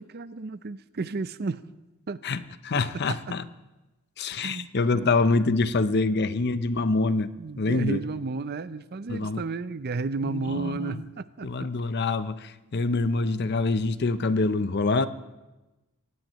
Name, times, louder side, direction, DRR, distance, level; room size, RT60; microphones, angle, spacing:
voice 1, 0.0-1.6 2.1-2.2 3.1-3.2 4.4-5.1 7.4-11.7, right 4 dB, 45° right, 14 dB, 0.5 m, -33 dB
voice 2, 2.2-3.5 4.2-7.3 7.6-8.0 9.1-9.4 10.2-11.0 11.4-15.1, left 3 dB, 50° left, 13 dB, 0.6 m, -25 dB
24.5 x 17.5 x 3.0 m, 1.1 s
head